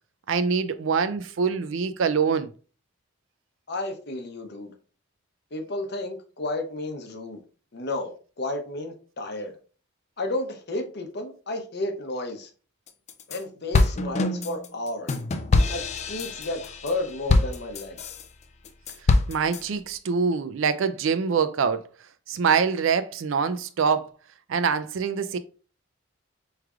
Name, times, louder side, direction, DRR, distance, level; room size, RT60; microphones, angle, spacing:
voice 1, 0.3-2.5 19.3-21.9 22.3-24.1 24.5-25.4, right 6 dB, 65° right, 0.4 m, -24 dB
voice 2, 3.7-4.7 5.5-7.4 7.7-9.5 10.2-12.5 13.3-15.1 15.7-18.1, left 2 dB, 50° left, 0.7 m, -32 dB
sound 1, 12.9-13.4 13.7-18.2 18.7-19.6, left 2 dB, 30° left, 0.3 m, -24 dB
4.8 x 3.2 x 2.3 m
head